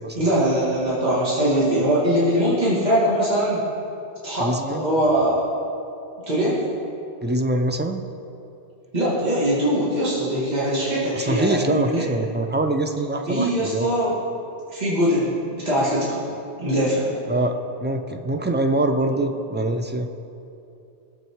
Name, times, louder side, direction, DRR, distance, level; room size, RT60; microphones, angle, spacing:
voice 1, 0.1-3.6 4.2-5.4 6.3-6.6 8.9-12.1 13.3-14.2 14.7-16.2 16.6-17.1 19.1-19.2, right 1 dB, 40° right, -8 dB, 2.4 m, -22 dB
voice 2, 4.4-4.8 7.2-8.0 11.1-13.9 17.3-17.6 17.8-20.1, right 2 dB, 15° right, 4 dB, 0.5 m, -24 dB
18.0 x 7.5 x 4.7 m, 2.8 s
omnidirectional pair, 1.1 m